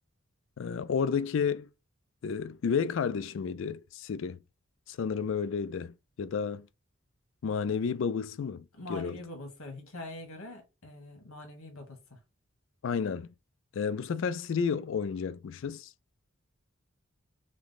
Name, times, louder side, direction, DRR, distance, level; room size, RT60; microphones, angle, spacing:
voice 1, 0.6-1.7 2.2-4.4 4.9-6.7 7.4-9.2 12.8-13.3 13.7-15.9, left 6 dB, 60° left, 0.3 m, -31 dB
voice 2, 8.7-12.2, left 2 dB, 85° left, 1.6 m, -43 dB
6.0 x 2.1 x 4.0 m
head